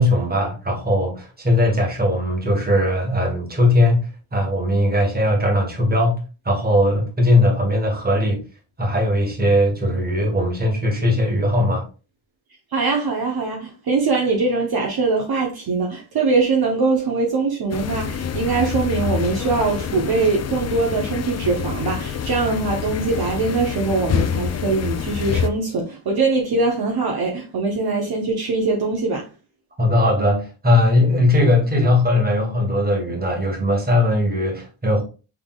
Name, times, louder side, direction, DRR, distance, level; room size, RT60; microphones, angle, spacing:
voice 1, 0.0-8.4 8.8-11.9 29.8-35.0, left 1 dB, 20° right, 1.4 m, -19 dB
voice 2, 12.7-29.3, right 3 dB, 50° right, 1.0 m, -22 dB
sound 1, 17.7-25.5, left 7 dB, 35° left, 0.4 m, -26 dB
5.9 x 3.5 x 2.3 m
wide cardioid pair, 145°, 47 cm